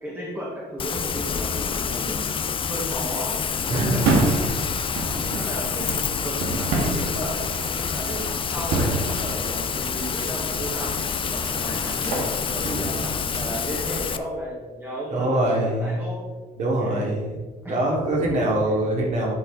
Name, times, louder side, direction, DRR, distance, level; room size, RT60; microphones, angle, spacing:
voice 1, 0.0-4.6 5.0-13.0 13.3-16.3 16.6-17.1 17.6-17.9 18.6-18.8, right 1 dB, 10° right, -5 dB, 1.8 m, -34 dB
Rain, 0.8-14.2, left 7 dB, 30° left, 0.5 m, -28 dB
voice 2, 3.7-4.0 15.1-16.0 16.6-17.4 17.6-19.3, right 1 dB, 45° right, -2 dB, 2.8 m, -23 dB
sound 1, 3.9-13.5, right 2 dB, 85° right, 2.1 m, -29 dB
10.5 x 4.9 x 4.0 m, 1.3 s
cardioid pair, 110°, 17 cm